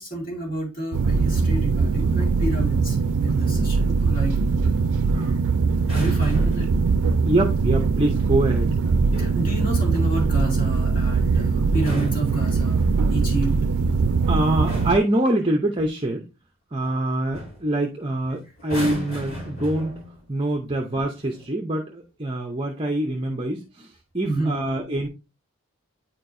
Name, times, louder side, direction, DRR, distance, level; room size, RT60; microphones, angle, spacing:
voice 1, 0.0-3.0 3.2-4.4 5.2-5.3 5.9-6.7 9.2-13.6 24.2-24.6, right 2 dB, 40° left, -2 dB, 2.4 m, -29 dB
sound 1, 0.9-15.0, right 4 dB, 85° right, 0.4 m, -21 dB
voice 2, 3.5-3.9 5.1-5.4 7.2-8.7 14.3-16.2 16.7-19.9 20.3-25.1, right 1 dB, 25° right, 2 dB, 0.6 m, -25 dB
sound 2, 5.8-6.8 8.8-9.5 11.6-13.0 14.0-14.3 14.7-15.1 16.8-17.0 17.3-17.6 18.6-20.3 21.2-21.4, equal, 70° left, 3.8 m, -35 dB
9.2 x 4.4 x 2.6 m, 0.28 s
head